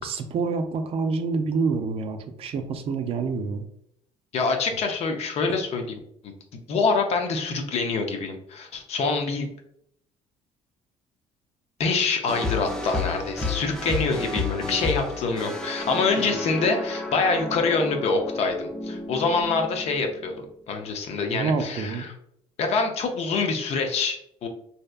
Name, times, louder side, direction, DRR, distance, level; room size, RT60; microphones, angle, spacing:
voice 1, 0.0-3.6 16.2-16.3 21.3-22.1, right 4 dB, 50° right, 7 dB, 0.4 m, -27 dB
voice 2, 4.3-6.0 6.2-9.5 11.8-22.1 22.6-24.5, left 4 dB, 55° left, 4 dB, 0.5 m, -26 dB
sound 1, 12.3-20.4, left 3 dB, 5° left, 0.5 m, -31 dB
2.7 x 2.1 x 2.3 m, 0.72 s
supercardioid pair, 90°, 13 cm